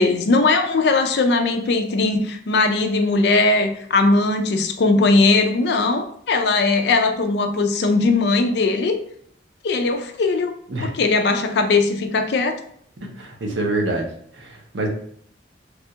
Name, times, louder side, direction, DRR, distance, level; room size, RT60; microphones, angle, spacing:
voice 1, 0.0-8.9 9.6-10.5 10.8-12.6, left 3 dB, 60° left, 5 dB, 0.4 m, -19 dB
voice 2, 13.0-14.1 14.3-14.9, right 2 dB, 85° right, 1 dB, 0.7 m, -26 dB
3.3 x 2.3 x 2.7 m, 0.64 s
head